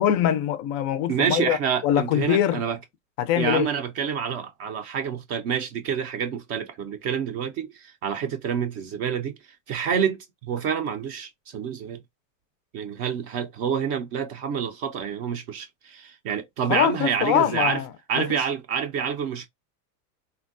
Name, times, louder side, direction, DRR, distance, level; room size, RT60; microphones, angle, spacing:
voice 1, 0.0-1.6 1.8-2.6 3.2-3.7 16.7-17.9 18.2-18.5, left 11 dB, 35° left, 0.4 m, -23 dB
voice 2, 1.1-2.8 3.4-9.3 9.7-12.0 12.7-17.8 18.1-19.5, right 7 dB, 30° right, 0.4 m, -28 dB
3.5 x 2.2 x 2.5 m
supercardioid pair, 135°, 49 cm